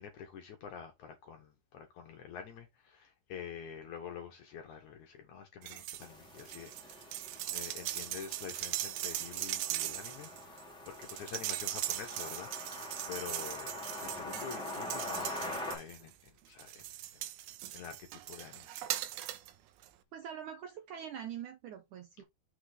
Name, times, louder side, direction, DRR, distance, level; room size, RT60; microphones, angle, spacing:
voice 1, 0.0-7.1 7.5-10.6 10.9-12.8 13.1-16.9 17.1-17.3 17.7-18.7, left 7 dB, 65° left, 2.1 m, -47 dB
sound 1, 5.6-6.1 6.4-16.1 16.6-19.5 19.8-19.9, right 14 dB, 85° right, 2.6 m, -40 dB
sound 2, 6.0-15.8, left 2 dB, ahead, 1.1 m, -44 dB
voice 2, 20.1-22.2, right 9 dB, 70° right, 2.0 m, -44 dB
6.5 x 3.6 x 4.9 m
omnidirectional pair, 4.5 m